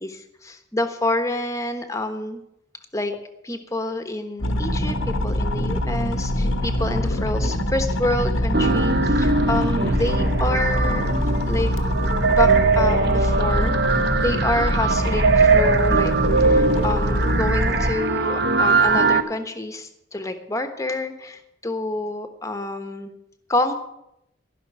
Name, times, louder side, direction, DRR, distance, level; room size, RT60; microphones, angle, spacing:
voice 1, 0.0-2.4 2.9-3.2 3.4-11.1 11.5-11.7 12.2-23.1 23.5-23.7, left 2 dB, 15° left, 7 dB, 1.2 m, -28 dB
sound 1, 4.4-17.9, left 1 dB, 90° left, 1.3 m, -24 dB
sound 2, 8.5-19.2, right 4 dB, 55° right, 0.8 m, -21 dB
15.0 x 6.0 x 9.5 m, 0.82 s
head